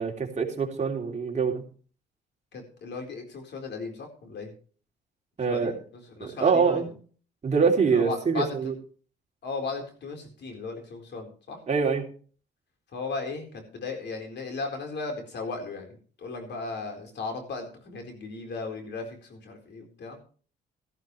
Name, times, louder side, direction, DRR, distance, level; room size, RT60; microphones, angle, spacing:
voice 1, 0.0-1.6 5.4-5.7 6.2-6.9 7.4-8.7 11.7-12.1, right 5 dB, 35° right, 0 dB, 3.0 m, -24 dB
voice 2, 2.5-4.5 5.4-6.9 7.9-8.7 9.4-11.6 12.9-20.2, left 3 dB, 60° left, 3 dB, 4.2 m, -36 dB
13.5 x 13.0 x 3.2 m, 0.41 s
cardioid pair, 90°, 20 cm